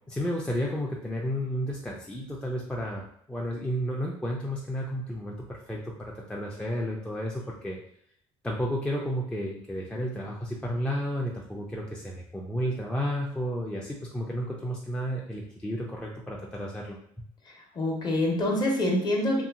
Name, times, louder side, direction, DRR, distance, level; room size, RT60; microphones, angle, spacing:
voice 1, 0.1-7.8 8.4-17.0, equal, 10° left, -3 dB, 0.4 m, -32 dB
voice 2, 17.5-19.4, left 1 dB, 35° left, 0 dB, 0.8 m, -26 dB
2.8 x 2.6 x 2.5 m, 0.70 s
cardioid pair, 115°, 12 cm